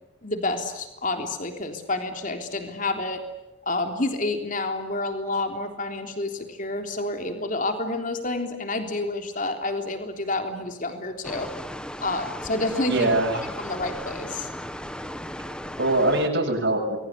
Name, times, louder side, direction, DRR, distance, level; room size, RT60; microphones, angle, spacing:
voice 1, 0.2-3.2 3.7-11.5 12.0-13.1 13.6-14.5, left 2 dB, 40° left, 5 dB, 3.6 m, -29 dB
sound 1, 11.2-16.3, equal, 5° left, 1.2 m, -36 dB
voice 2, 12.9-13.4 15.5-17.0, right 2 dB, 60° right, -1 dB, 7.1 m, -23 dB
29.0 x 22.5 x 8.3 m, 1.0 s
head